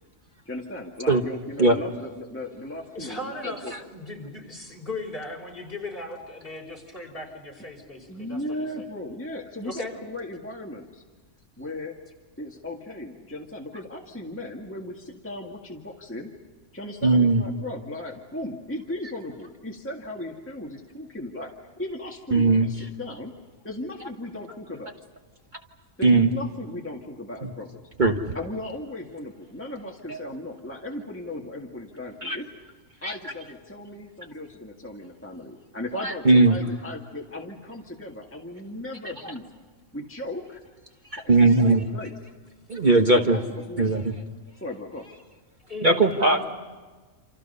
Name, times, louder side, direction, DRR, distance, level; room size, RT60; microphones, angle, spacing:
voice 1, 0.4-3.7 8.1-11.0 11.6-12.0 12.4-16.3 16.7-21.5 21.8-23.3 23.6-24.9 26.0-27.9 28.3-32.5 33.0-39.4 39.9-40.6 41.2-42.1 43.1-44.1 44.6-45.1, left 1 dB, 10° left, -1 dB, 1.8 m, -36 dB
voice 2, 2.9-8.8 9.6-9.9 26.0-26.3 45.7-46.5, left 2 dB, 45° left, 1 dB, 5.0 m, -38 dB
voice 3, 17.0-17.4 22.3-22.7 26.0-26.3 27.4-27.5 28.0-28.3 30.1-30.3 32.2-32.4 33.0-33.3 36.0-36.6 41.1-41.8 42.7-43.4 43.8-44.1 45.8-46.4, right 2 dB, 40° right, 4 dB, 1.4 m, -19 dB
28.5 x 27.5 x 5.5 m, 1.4 s
omnidirectional pair, 1.4 m